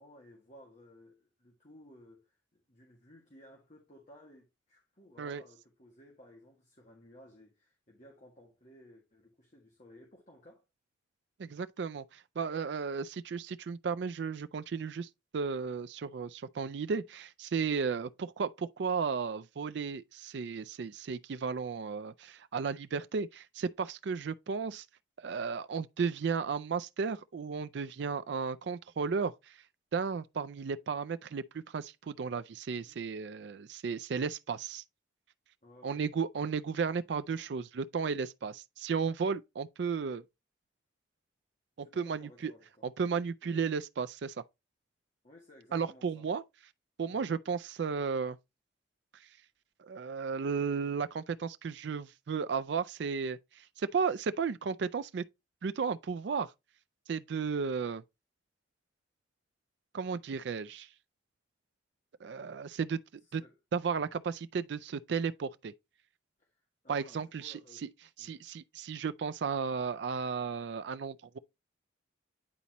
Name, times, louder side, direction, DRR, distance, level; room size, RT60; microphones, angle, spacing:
voice 1, 0.0-10.6 17.9-18.1 32.7-33.0 35.6-36.0 41.8-42.9 43.4-43.7 45.2-46.3 47.1-47.3 63.4-63.5 64.0-64.1 66.4-66.5 66.8-67.9 68.2-68.5, left 1 dB, 40° left, 1.7 m, -57 dB
voice 2, 11.4-24.8 25.2-29.5 29.9-34.8 35.8-40.2 41.8-42.5 42.8-44.3 45.7-46.4 47.0-48.4 49.8-55.2 55.6-56.5 57.1-58.0 59.9-60.9 62.2-63.0 63.3-63.4 63.7-65.7 66.9-67.5 67.8-67.9 68.2-71.4, right 5 dB, 65° right, 0.4 m, -34 dB
9.9 x 4.1 x 2.9 m
head